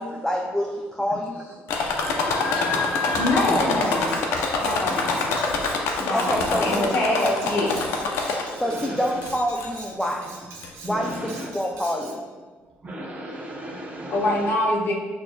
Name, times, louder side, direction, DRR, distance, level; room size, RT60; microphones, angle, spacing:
voice 1, 0.0-1.3 6.1-7.3 8.6-10.3 10.9-12.2, equal, 5° left, -1 dB, 0.4 m, -27 dB
voice 2, 1.3-3.9 4.9-5.7 6.1-6.7 8.1-9.2 9.9-10.1 10.4-11.5 12.0-12.2 12.8-14.5, right 1 dB, 35° right, -1 dB, 0.8 m, -37 dB
sound 1, 1.7-8.7 9.2-9.8 10.6-10.7 11.1-11.2, left 3 dB, 80° left, 0.5 m, -25 dB
voice 3, 3.2-4.2 4.6-5.4 6.0-7.8 14.1-14.9, left 1 dB, 55° left, -2 dB, 0.9 m, -25 dB
Cutlery silverware, 3.8-12.2, right 3 dB, 75° right, 0.7 m, -43 dB
6.1 x 2.5 x 2.2 m, 1.5 s
cardioid pair, 90°, 4 cm